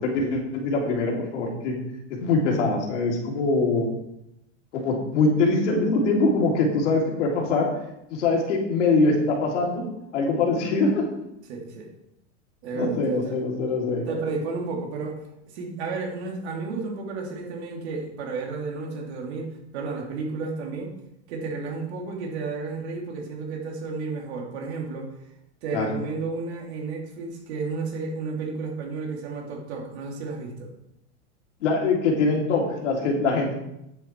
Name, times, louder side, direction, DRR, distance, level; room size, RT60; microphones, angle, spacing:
voice 1, 0.0-1.7 2.2-3.9 4.7-7.7 8.1-9.8 10.1-11.0 12.7-14.0 25.7-25.9 31.6-33.5, left 3 dB, 80° left, -1 dB, 3.0 m, -23 dB
voice 2, 11.5-11.9 12.6-13.4 14.1-15.2 15.5-20.9 21.3-25.1 25.6-30.7, right 4 dB, 65° right, 0 dB, 2.7 m, -32 dB
9.3 x 7.8 x 4.4 m, 0.83 s
supercardioid pair, 155°, 35 cm